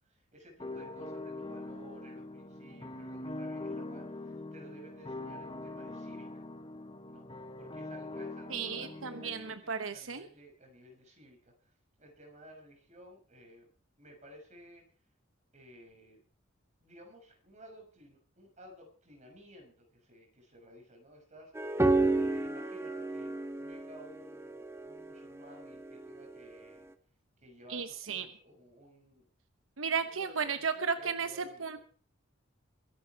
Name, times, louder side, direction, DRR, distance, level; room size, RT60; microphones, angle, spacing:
voice 1, 0.0-6.5 7.1-13.7 14.0-14.8 15.5-16.2 16.8-26.9 27.4-29.3 29.9-31.8, equal, 35° right, 2 dB, 6.4 m, -55 dB
sound 1, 0.6-9.5, left 2 dB, 25° left, 1.0 m, -43 dB
voice 2, 8.5-10.3 27.7-28.3 29.8-31.3 31.6-31.8, right 6 dB, 90° right, 9 dB, 1.0 m, -34 dB
sound 2, 21.6-26.5, right 2 dB, 15° right, 0.9 m, -32 dB
22.5 x 11.0 x 4.7 m, 0.43 s
head